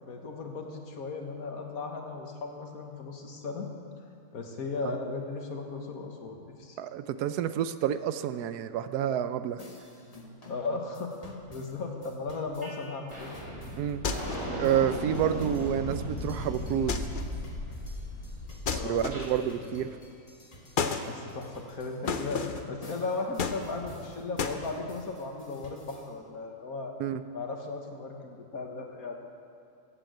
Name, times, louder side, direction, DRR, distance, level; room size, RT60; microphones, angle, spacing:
voice 1, 0.0-3.7 4.3-6.8 10.5-13.3 18.7-19.1 19.4-20.0 21.1-26.9 27.3-29.2, left 3 dB, 65° left, 2 dB, 1.9 m, -36 dB
voice 2, 6.8-9.6 13.8-14.0 14.5-17.0 18.7-19.9 27.0-27.2, right 10 dB, 85° right, 12 dB, 1.2 m, -29 dB
sound 1, 9.6-26.1, left 1 dB, 25° left, 1.5 m, -51 dB
sound 2, 12.6-12.8 13.1-19.3, equal, 50° right, 4.6 m, -36 dB
sound 3, 14.0-14.6 16.9-17.4 18.7-19.5 20.8-21.1 22.1-22.7 23.4-24.0 24.4-24.6, left 5 dB, 50° left, 0.6 m, -32 dB
14.5 x 8.4 x 7.9 m, 2.7 s
omnidirectional pair, 1.6 m